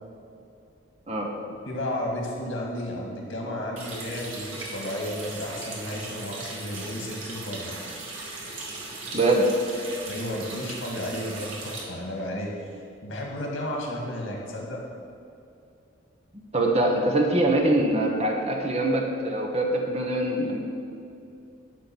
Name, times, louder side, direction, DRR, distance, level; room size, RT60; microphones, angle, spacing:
voice 1, 1.7-7.8 10.1-14.8, left 1 dB, 85° left, -1 dB, 2.0 m, -33 dB
Water tap faucet, 3.8-11.8, right 2 dB, 85° right, 2.0 m, -38 dB
voice 2, 9.1-9.5 16.5-20.6, right 1 dB, 30° right, 1 dB, 1.0 m, -23 dB
11.5 x 3.9 x 7.0 m, 2.6 s
head